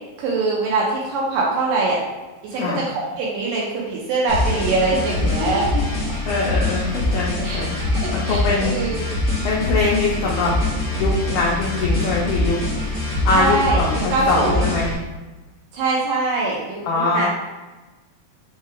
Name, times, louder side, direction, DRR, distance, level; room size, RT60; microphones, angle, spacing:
voice 1, 0.2-2.0 2.5-2.6 2.9-5.6 7.4-7.7 7.9-9.1 13.3-13.8 14.1-14.7 15.7-17.3, right 3 dB, 85° right, -3 dB, 2.0 m, -23 dB
voice 2, 2.5-2.8 5.5-5.8 6.3-7.7 8.1-8.7 9.4-10.5 10.9-12.6 13.2-14.9 16.9-17.3, left 3 dB, 90° left, -4 dB, 1.7 m, -22 dB
sound 1, 4.3-14.9, left 2 dB, 60° left, 0.9 m, -23 dB
5.7 x 2.3 x 3.0 m, 1.2 s
omnidirectional pair, 4.3 m